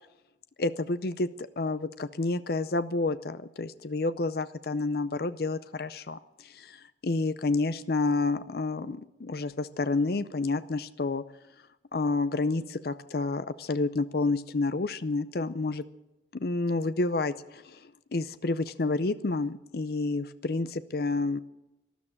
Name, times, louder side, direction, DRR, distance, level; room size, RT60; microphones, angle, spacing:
voice 1, 0.6-11.2 11.9-15.8 16.3-21.4, left 3 dB, 55° left, 13 dB, 0.6 m, -29 dB
13.0 x 12.5 x 8.6 m, 0.93 s
head